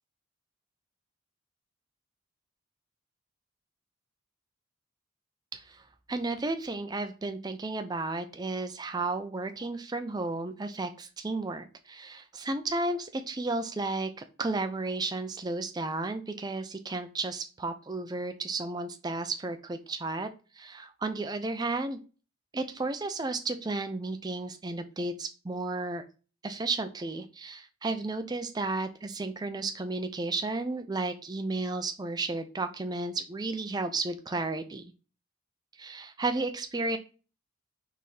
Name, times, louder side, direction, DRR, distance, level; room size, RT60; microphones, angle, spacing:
voice 1, 5.5-5.8 6.1-14.1 14.4-20.3 20.5-22.0 22.5-26.0 26.4-34.8 35.8-37.0, right 3 dB, 20° right, 8 dB, 0.4 m, -33 dB
4.2 x 3.5 x 3.3 m, 0.34 s
head